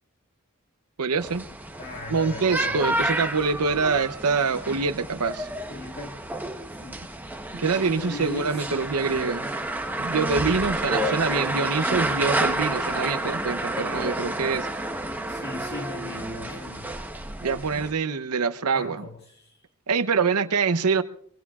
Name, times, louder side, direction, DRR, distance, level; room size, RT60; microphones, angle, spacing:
voice 1, 1.0-1.4 2.1-5.5 7.5-9.5 10.0-14.9 17.4-19.0 19.9-21.0, right 5 dB, 85° right, 0.8 m, -25 dB
sound 1, 1.2-17.9, right 1 dB, 10° right, 0.9 m, -30 dB
voice 2, 1.8-3.0 5.7-6.2 6.8-7.3 7.8-8.8 15.3-17.0 18.7-19.6, left 2 dB, 50° left, 1.9 m, -38 dB
24.0 x 24.0 x 2.4 m
head